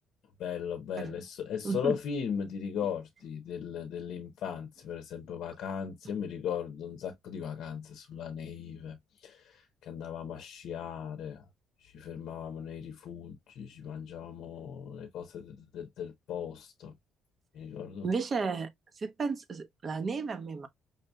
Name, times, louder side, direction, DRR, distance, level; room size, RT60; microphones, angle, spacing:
voice 1, 0.4-11.5 11.8-16.9 17.5-18.1, left 8 dB, 70° left, 0.7 m, -38 dB
voice 2, 1.6-2.0 18.0-20.7, right 4 dB, 40° right, 0.8 m, -33 dB
5.4 x 2.7 x 2.2 m
cardioid pair, 90°, 0 cm